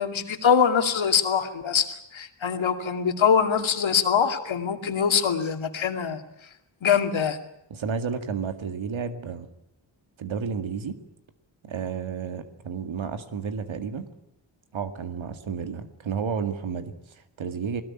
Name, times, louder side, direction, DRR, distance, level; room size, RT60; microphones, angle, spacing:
voice 1, 0.0-6.2 6.8-7.4, left 7 dB, 85° left, 6 dB, 2.6 m, -23 dB
voice 2, 7.7-9.5 10.2-11.0 11.6-14.1 14.7-17.8, right 6 dB, 85° right, 8 dB, 2.1 m, -31 dB
21.0 x 19.5 x 9.9 m, 0.82 s
cardioid pair, 75°, 46 cm